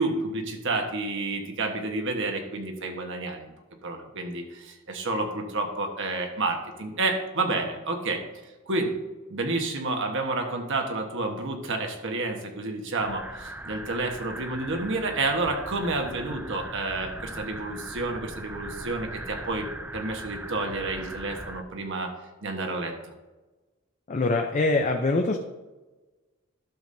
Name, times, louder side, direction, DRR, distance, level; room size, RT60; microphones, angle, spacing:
voice 1, 0.0-3.5 3.8-8.2 8.7-9.0 9.3-19.7 19.9-22.1 22.4-22.9, right 2 dB, 65° right, 3 dB, 1.3 m, -30 dB
sound 1, 13.0-21.6, right 1 dB, 10° right, 0.3 m, -39 dB
voice 2, 24.1-25.4, left 2 dB, 35° left, 3 dB, 0.6 m, -24 dB
12.0 x 7.2 x 2.7 m, 1.2 s
head